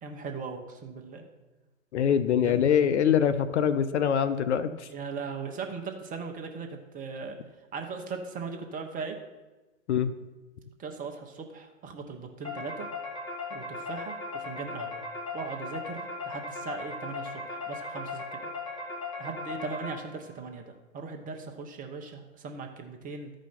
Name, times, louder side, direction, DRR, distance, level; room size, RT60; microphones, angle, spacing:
voice 1, 0.0-1.3 2.4-2.6 4.9-7.4 7.7-9.2 10.8-12.9 13.5-15.0 15.3-16.0 16.3-18.5 19.2-23.3, right 5 dB, 20° right, 4 dB, 1.1 m, -39 dB
voice 2, 1.9-4.9 9.9-10.1, left 8 dB, 60° left, 12 dB, 0.7 m, -24 dB
sound 1, 12.4-20.3, left 3 dB, 10° left, 2.8 m, -38 dB
13.0 x 5.2 x 5.8 m, 1.1 s
hypercardioid pair, 115°, 39 cm